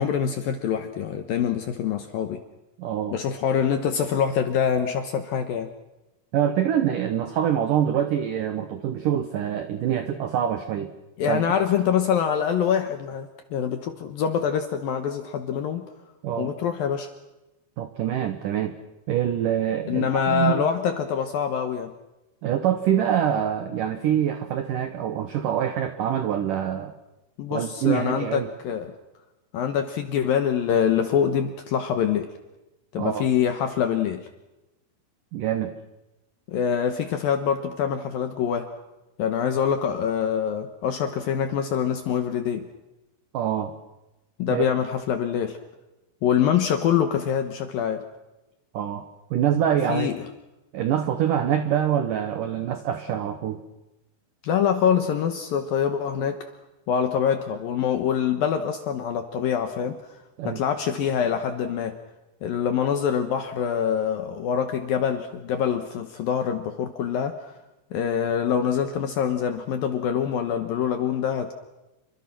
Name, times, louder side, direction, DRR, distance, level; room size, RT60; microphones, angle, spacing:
voice 1, 0.0-2.4 3.1-5.7 11.2-15.9 16.4-17.1 19.9-21.9 27.4-28.9 29.5-32.3 32.9-34.3 36.5-38.7 39.2-42.6 44.4-45.6 46.2-48.0 49.9-50.3 54.4-56.4 56.9-60.0 60.4-62.0 62.4-67.5 67.9-71.5, left 8 dB, 70° left, 7 dB, 2.3 m, -25 dB
voice 2, 2.8-3.2 6.3-10.9 11.3-11.5 16.2-16.5 17.8-18.8 19.1-20.6 22.4-26.9 27.5-28.5 33.0-33.3 35.3-35.7 43.3-43.7 44.5-44.6 48.7-50.1 50.7-53.6 60.4-60.6, right 10 dB, 80° right, 9 dB, 1.9 m, -25 dB
28.5 x 24.0 x 6.0 m, 1.0 s
omnidirectional pair, 5.5 m